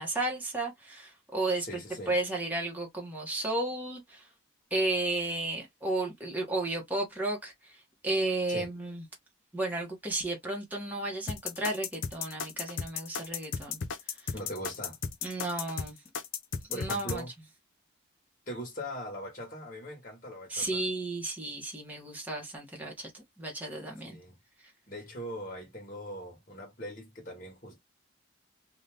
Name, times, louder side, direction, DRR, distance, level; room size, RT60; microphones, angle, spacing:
voice 1, 0.0-1.7 2.1-4.3 4.7-7.5 8.0-9.0 9.5-13.8 15.2-16.0 16.7-17.2 20.5-24.2, right 2 dB, 10° right, 0.9 m, -33 dB
voice 2, 1.6-2.1 8.5-8.7 14.3-15.0 16.7-17.3 18.5-20.8 24.0-24.4 24.9-27.8, equal, 40° left, 1.3 m, -41 dB
sound 1, 11.3-17.2, left 6 dB, 80° left, 0.6 m, -35 dB
2.7 x 2.3 x 3.3 m
head